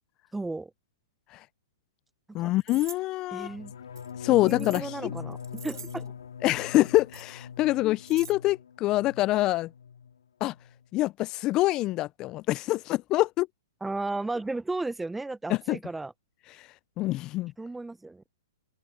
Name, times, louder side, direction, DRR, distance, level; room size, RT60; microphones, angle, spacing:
voice 1, 0.3-0.7 2.3-2.5 3.3-3.7 4.3-5.4 5.6-6.1 7.7-7.8 13.8-16.1 17.6-18.2, right 2 dB, 5° right, 0.8 m, -34 dB
voice 2, 2.3-3.6 4.2-5.1 6.4-9.7 10.4-10.5 10.9-13.5 15.5-15.8 16.6-16.7 17.0-17.5, left 17 dB, 30° left, 0.4 m, -25 dB
sound 1, 2.6-3.0 3.9-4.9 5.3-6.1 6.7-7.3 7.8-8.3, right 5 dB, 85° right, 2.5 m, -45 dB
sound 2, 3.4-9.4 9.7-10.2 10.4-10.8, left 7 dB, 75° left, 2.1 m, -42 dB
open air
hypercardioid pair, 120°, 2 cm